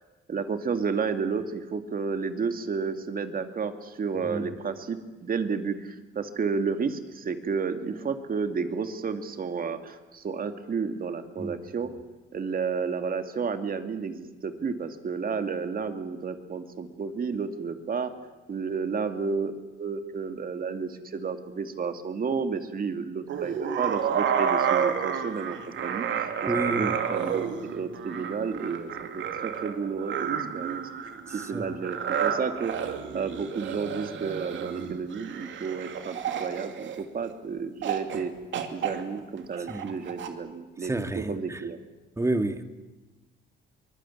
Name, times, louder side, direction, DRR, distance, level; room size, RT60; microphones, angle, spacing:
voice 1, 0.3-11.9 12.3-18.1 18.5-30.8 31.3-32.7 33.1-38.3 38.7-41.8, right 5 dB, 45° right, 8 dB, 2.4 m, -31 dB
sound 1, 23.3-37.3 37.8-38.2 38.5-40.3, right 8 dB, 70° right, 2.5 m, -30 dB
voice 2, 26.5-27.0 31.5-31.7 39.7-39.9 40.8-41.6 42.2-42.6, right 2 dB, 15° right, 8 dB, 2.0 m, -29 dB
23.5 x 21.0 x 8.6 m, 1.1 s
cardioid pair, 90°, 20 cm